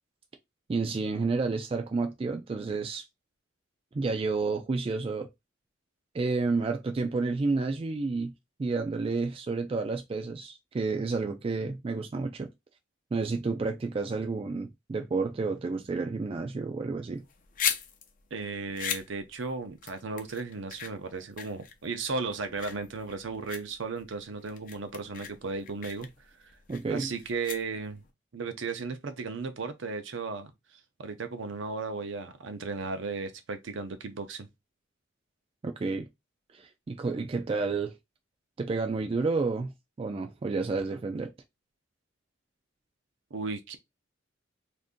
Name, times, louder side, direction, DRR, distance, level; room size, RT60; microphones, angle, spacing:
voice 1, 0.7-3.0 3.9-5.3 6.1-8.3 8.6-12.5 13.1-17.2 26.7-27.1 35.8-36.1 36.5-37.9 38.6-39.7 40.0-41.3, right 3 dB, 30° right, 0.3 m, -30 dB
sound 1, 17.2-28.1, left 8 dB, 40° left, 0.5 m, -38 dB
voice 2, 18.3-26.1 26.4-26.5 26.9-28.0 28.3-34.5 43.3-43.8, right 4 dB, 70° right, 0.6 m, -35 dB
2.6 x 2.5 x 3.6 m
head